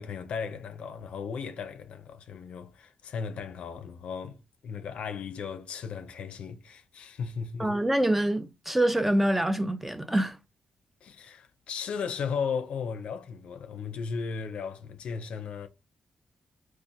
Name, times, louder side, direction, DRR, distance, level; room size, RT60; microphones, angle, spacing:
voice 1, 0.0-7.8 11.0-15.7, left 6 dB, 75° left, 0.5 m, -36 dB
voice 2, 7.6-10.4, right 1 dB, 10° right, 0.4 m, -25 dB
4.0 x 2.4 x 2.5 m
cardioid pair, 75°, 2 cm